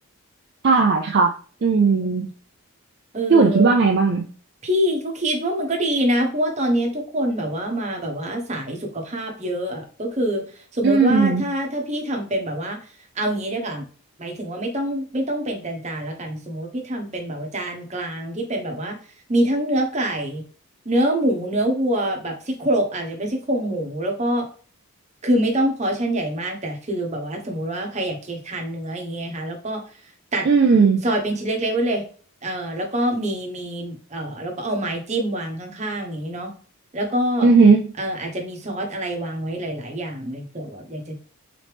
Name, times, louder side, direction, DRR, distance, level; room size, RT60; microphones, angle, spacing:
voice 1, 0.6-1.3 1.6-2.3 3.3-4.3 10.8-11.4 30.5-31.0 37.4-37.9, right 4 dB, 50° right, 3 dB, 0.4 m, -16 dB
voice 2, 1.7-2.1 3.1-3.8 4.6-12.8 13.1-13.9 14.2-19.0 19.3-20.4 20.8-24.5 25.2-29.8 30.3-30.5 31.0-32.0 32.4-36.5 36.9-37.5 38.0-41.2, right 1 dB, 30° right, 2 dB, 0.9 m, -25 dB
3.9 x 3.2 x 3.3 m, 0.41 s
head